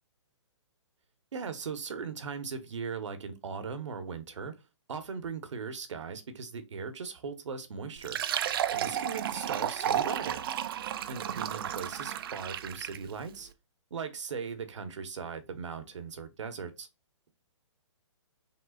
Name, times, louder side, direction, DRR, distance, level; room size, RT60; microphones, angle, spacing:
voice 1, 1.3-4.5 4.9-8.2 8.7-10.4 11.1-13.5 13.9-16.9, right 5 dB, 75° right, 1.2 m, -38 dB
Fill (with liquid), 8.0-13.1, right 10 dB, 50° right, 0.5 m, -32 dB
5.5 x 3.5 x 2.4 m
hypercardioid pair, 145°, 16 cm